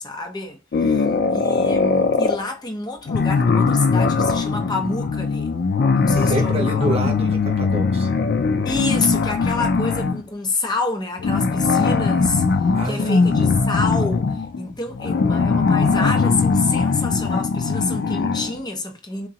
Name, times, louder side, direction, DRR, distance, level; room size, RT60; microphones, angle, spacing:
voice 1, 0.0-5.5 5.9-7.0 8.6-12.4 12.8-19.3, left 3 dB, 25° left, 0.7 m, -28 dB
sound 1, 0.7-2.4 3.1-10.2 11.2-18.6, left 4 dB, 60° left, 0.4 m, -20 dB
voice 2, 6.1-8.1 12.7-13.7, right 1 dB, 35° right, 1.0 m, -28 dB
3.6 x 2.9 x 2.8 m
head